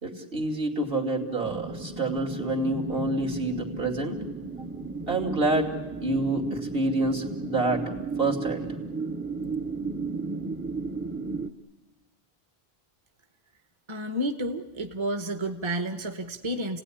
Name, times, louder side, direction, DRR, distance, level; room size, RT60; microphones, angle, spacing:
voice 1, 0.0-4.2 5.1-5.7 6.0-7.8 8.2-8.7, right 2 dB, 65° right, 3 dB, 3.1 m, -27 dB
sound 1, 1.4-11.5, right 3 dB, 15° right, 0.7 m, -34 dB
voice 2, 13.9-16.8, right 1 dB, 30° right, 6 dB, 1.1 m, -31 dB
29.5 x 17.5 x 9.9 m, 1.1 s
omnidirectional pair, 1.0 m